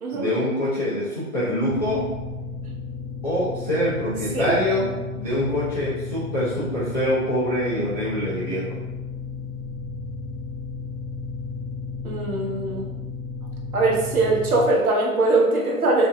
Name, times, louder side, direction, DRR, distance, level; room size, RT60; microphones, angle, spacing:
voice 1, 0.1-2.0 3.2-4.9 5.2-8.8, left 1 dB, 30° left, -12 dB, 0.4 m, -25 dB
sound 1, 1.7-14.7, left 4 dB, 20° right, 0.7 m, -33 dB
voice 2, 12.0-12.8 13.7-16.1, right 2 dB, 70° right, -1 dB, 0.7 m, -21 dB
2.6 x 2.0 x 2.4 m, 1.1 s
figure-of-eight pair, 130°, 46 cm